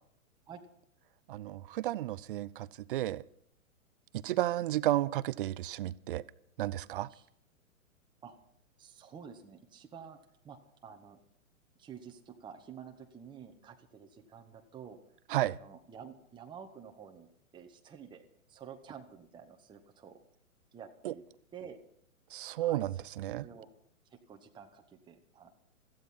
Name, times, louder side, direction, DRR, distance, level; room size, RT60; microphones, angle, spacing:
voice 1, 1.3-3.2 4.2-6.2 6.6-7.1 15.3-15.6 21.0-21.1 22.3-23.5, right 14 dB, 40° right, 19 dB, 0.7 m, -32 dB
voice 2, 8.8-10.2 10.4-11.2 11.8-15.0 15.3-17.3 17.5-20.2 20.7-21.2 21.5-21.8 22.6-23.0 23.4-23.7 24.1-25.5, right 7 dB, 10° right, 3 dB, 1.3 m, -50 dB
17.0 x 14.5 x 5.7 m, 0.69 s
figure-of-eight pair, 120°, 42 cm